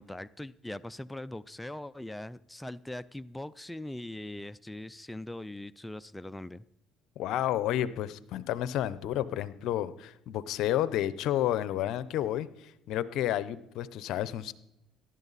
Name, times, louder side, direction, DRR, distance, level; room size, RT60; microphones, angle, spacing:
voice 1, 0.0-6.6, left 1 dB, 5° left, 0.4 m, -41 dB
voice 2, 7.2-14.5, left 12 dB, 70° left, 0.7 m, -31 dB
18.0 x 12.0 x 4.1 m
supercardioid pair, 90°, 0 cm